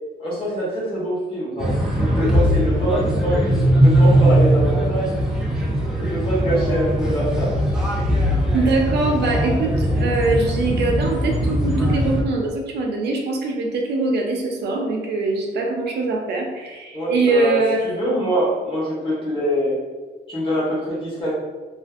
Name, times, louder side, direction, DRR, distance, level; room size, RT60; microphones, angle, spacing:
voice 1, 0.2-5.1 6.0-7.5 16.9-19.8 20.3-21.3, right 1 dB, 30° left, -7 dB, 0.9 m, -24 dB
sound 1, 1.6-12.2, equal, 5° right, 0.3 m, -20 dB
voice 2, 8.5-17.8, right 3 dB, 75° right, 1 dB, 0.5 m, -22 dB
2.5 x 2.4 x 2.3 m, 1.3 s
wide cardioid pair, 175°, 17 cm